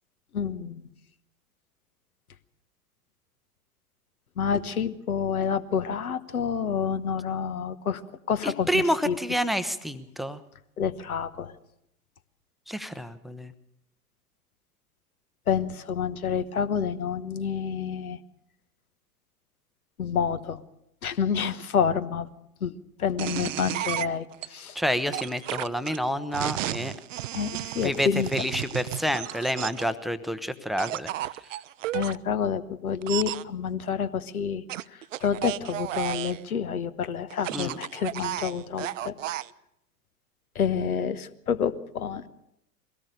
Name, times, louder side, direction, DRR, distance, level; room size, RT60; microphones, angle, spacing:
voice 1, 0.3-0.9 4.4-8.0 8.3-9.2 10.8-11.5 15.5-18.2 20.0-20.6 21.0-22.3 22.6-24.8 27.3-28.3 31.9-39.2 40.5-42.2, left 7 dB, 70° left, 13 dB, 1.2 m, -28 dB
voice 2, 8.4-10.4 12.7-13.5 24.7-26.9 27.8-31.1 37.5-37.8, equal, ahead, 12 dB, 0.7 m, -28 dB
sound 1, 23.2-24.5 25.1-29.9 30.8-32.2 33.0-33.4 34.7-36.4 37.3-39.5, right 14 dB, 55° right, 0.6 m, -33 dB
22.0 x 17.5 x 6.7 m, 0.80 s
figure-of-eight pair, 95°, 45 cm